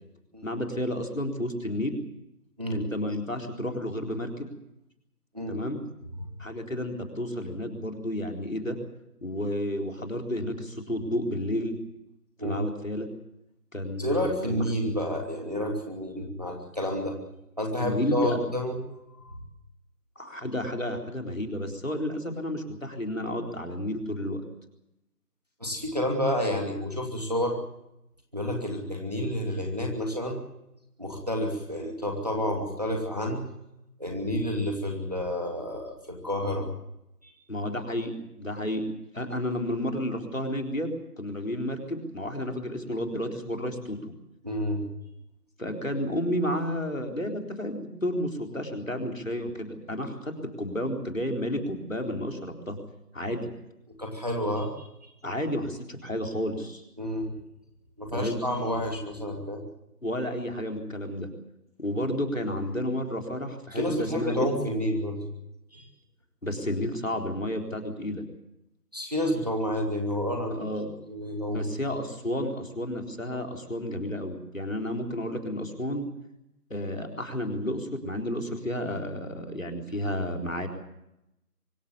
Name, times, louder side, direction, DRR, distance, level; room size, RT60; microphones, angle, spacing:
voice 1, 0.4-2.0 2.7-4.3 5.5-5.8 6.4-8.8 9.2-11.7 12.4-13.1 13.7-14.6 17.8-18.4 20.2-24.4 37.5-38.9 39.1-40.9 41.2-44.1 45.6-52.8 53.1-53.5 55.2-56.8 58.1-58.4 60.0-61.3 61.8-64.5 66.4-68.2 70.5-70.9 71.5-76.1 76.7-80.7, left 1 dB, 55° left, 4 dB, 4.0 m, -31 dB
voice 2, 14.0-17.2 17.6-18.8 19.2-19.4 25.6-27.6 28.3-30.4 31.0-33.4 34.0-36.7 37.2-37.3 44.4-44.9 53.9-55.1 57.0-57.3 58.0-59.6 63.7-65.2 65.7-65.8 68.9-70.7 71.1-71.7, equal, 25° right, 2 dB, 2.7 m, -30 dB
24.5 x 14.5 x 9.6 m, 0.85 s
figure-of-eight pair, 180°, 47 cm